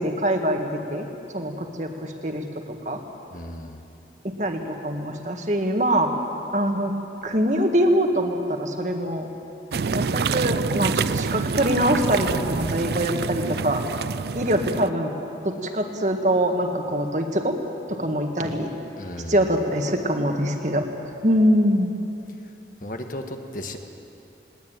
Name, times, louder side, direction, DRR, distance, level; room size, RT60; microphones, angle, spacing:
voice 1, 0.0-3.0 4.2-6.1 6.5-6.9 7.2-9.3 9.9-13.8 14.4-15.1 15.4-17.6 17.9-18.7 19.3-20.9 21.2-21.9, equal, 40° right, 4 dB, 1.8 m, -24 dB
voice 2, 3.3-3.8 19.0-19.4 22.8-23.8, left 1 dB, 50° left, 5 dB, 1.6 m, -35 dB
sound 1, 9.7-14.9, right 5 dB, 65° right, 0.4 m, -26 dB
20.5 x 19.0 x 9.1 m, 2.8 s
head